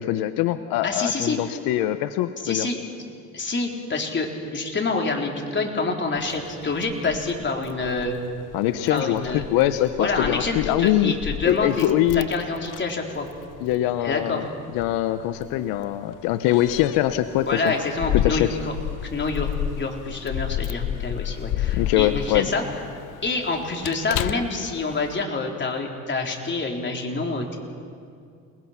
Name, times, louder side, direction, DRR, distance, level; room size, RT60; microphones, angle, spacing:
voice 1, 0.0-2.7 8.5-11.1 11.5-12.3 13.6-14.5 14.7-17.7 18.1-18.6 21.7-22.5, left 13 dB, 85° left, 11 dB, 0.9 m, -23 dB
voice 2, 0.8-1.4 2.4-2.8 3.3-8.2 8.9-9.4 10.0-11.9 12.1-13.3 14.0-14.4 17.5-18.7 19.1-19.5 19.8-22.6 23.2-27.6, left 3 dB, 30° left, 1 dB, 4.0 m, -27 dB
Keys jangling, 6.2-25.2, left 12 dB, 60° left, 0.7 m, -32 dB
28.5 x 20.0 x 5.9 m, 2.3 s
supercardioid pair, 85°, 35 cm